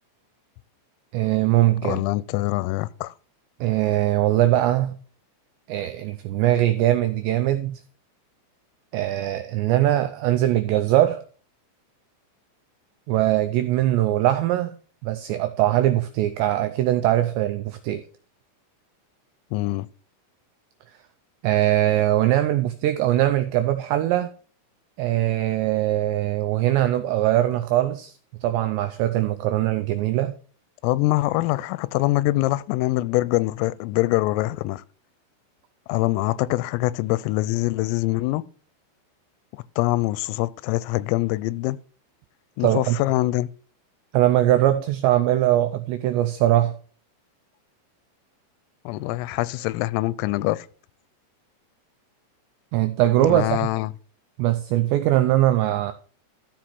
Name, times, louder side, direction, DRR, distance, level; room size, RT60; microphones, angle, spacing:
voice 1, 1.1-2.0 3.6-5.0 5.7-7.8 8.9-11.2 13.1-14.8 15.0-18.0 21.4-24.3 25.0-28.1 28.4-30.3 42.6-43.0 44.1-46.7 52.7-53.7 54.4-55.9, right 14 dB, 90° right, 2.5 m, -21 dB
voice 2, 1.8-3.1 19.5-19.9 30.8-34.8 35.9-38.4 39.5-41.8 42.6-43.5 48.9-50.7 53.2-53.9, left 18 dB, 90° left, 3.3 m, -24 dB
13.5 x 5.2 x 6.0 m
omnidirectional pair, 5.8 m